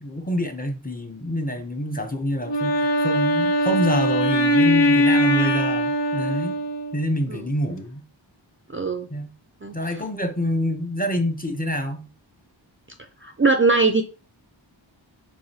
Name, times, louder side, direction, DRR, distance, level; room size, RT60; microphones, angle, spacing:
voice 1, 0.0-6.6 6.9-8.1 9.1-9.3 9.7-12.1, equal, 20° left, 0.7 m, -27 dB
Wind instrument woodwind instrument, 2.4-7.2, equal, 65° left, 0.8 m, -21 dB
voice 2, 8.7-9.1 9.6-9.8 13.2-14.0, right 3 dB, 30° right, 0.4 m, -20 dB
4.8 x 4.0 x 2.8 m
wide cardioid pair, 45°, 46 cm